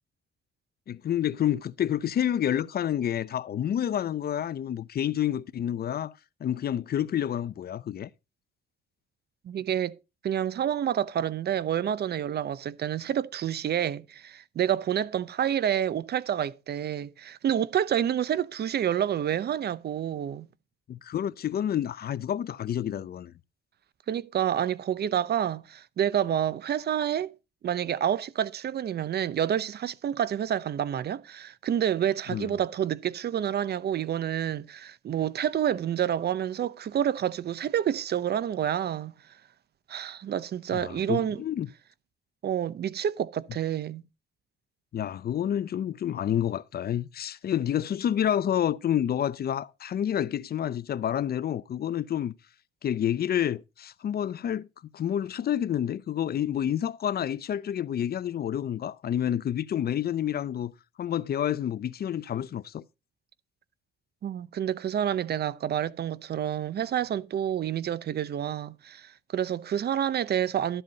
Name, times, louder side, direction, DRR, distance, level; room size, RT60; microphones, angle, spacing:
voice 1, 0.9-6.1 6.4-8.1 20.9-23.3 32.3-32.5 40.7-41.7 44.9-52.3 52.8-54.7 54.9-60.7 61.0-62.8, left 10 dB, 50° left, 0.6 m, -29 dB
voice 2, 9.4-10.0 10.2-20.5 24.1-27.3 27.6-39.1 39.9-41.4 42.4-44.0 64.2-70.8, right 10 dB, 55° right, 0.7 m, -28 dB
12.5 x 7.9 x 4.0 m
cardioid pair, 90°, 20 cm